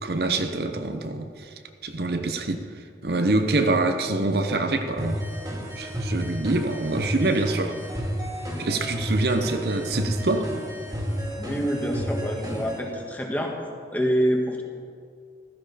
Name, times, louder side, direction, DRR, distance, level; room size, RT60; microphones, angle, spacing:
voice 1, 0.0-1.5 1.8-2.7 3.0-5.2 5.8-7.8 8.6-10.5, right 2 dB, 65° right, 6 dB, 0.8 m, -25 dB
sound 1, 5.0-12.8, equal, 20° right, 2.2 m, -31 dB
voice 2, 11.4-13.5 13.9-14.6, equal, 10° left, 1 dB, 1.4 m, -26 dB
15.5 x 13.5 x 4.1 m, 2.3 s
head